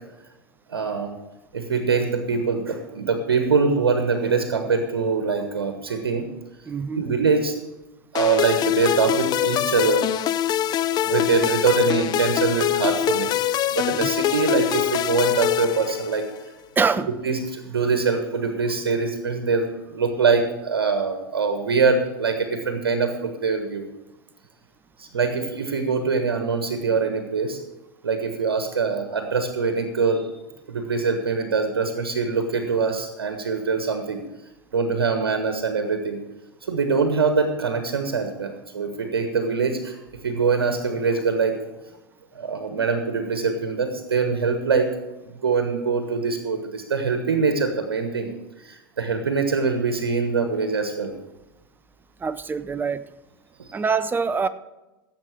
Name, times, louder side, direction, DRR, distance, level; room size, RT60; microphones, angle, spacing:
voice 1, 0.7-1.1 1.5-6.3 6.9-7.6 8.1-10.0 10.7-16.3 17.1-23.9 25.0-27.6 28.0-30.3 30.7-34.2 34.7-36.2 36.6-40.0 40.2-41.6 42.3-44.9 45.2-51.1 53.6-53.7, right 4 dB, 75° right, 6 dB, 1.4 m, -23 dB
voice 2, 6.7-7.0 16.8-17.1 52.2-53.0 53.7-54.5, right 5 dB, 15° right, 13 dB, 0.7 m, -24 dB
sound 1, 8.2-16.4, left 12 dB, 35° left, 0.5 m, -24 dB
16.5 x 7.7 x 4.7 m, 1.0 s
figure-of-eight pair, 90°, 12 cm